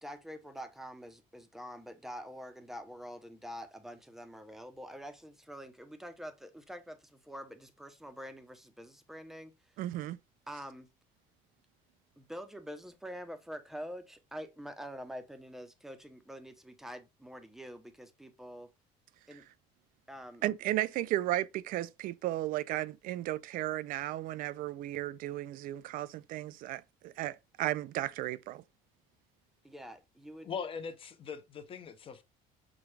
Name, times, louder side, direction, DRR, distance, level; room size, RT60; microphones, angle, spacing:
voice 1, 0.0-9.5 10.5-10.9 12.2-18.7 19.3-19.4 20.1-20.4 29.6-30.5, equal, ahead, 0.7 m, -46 dB
voice 2, 9.8-10.2 20.4-28.6, right 15 dB, 60° right, 0.4 m, -34 dB
voice 3, 30.4-32.2, left 6 dB, 35° left, 0.8 m, -40 dB
6.0 x 2.3 x 3.2 m
cardioid pair, 130°, 16 cm